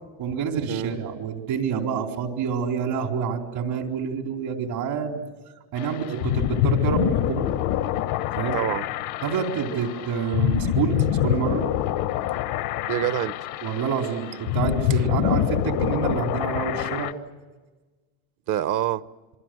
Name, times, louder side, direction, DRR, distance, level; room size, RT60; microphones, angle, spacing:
voice 1, 0.2-5.2 5.7-7.5 8.4-8.6 9.2-11.7 13.6-17.1, right 6 dB, 75° right, 3 dB, 4.4 m, -27 dB
sound 1, 5.8-17.1, left 13 dB, 85° left, 1.1 m, -26 dB
voice 2, 6.0-6.3 8.5-8.8 12.9-13.4 14.9-15.1 18.5-19.0, right 12 dB, 55° right, 15 dB, 1.0 m, -27 dB
27.5 x 24.0 x 7.9 m, 1.3 s
cardioid pair, 110°, 37 cm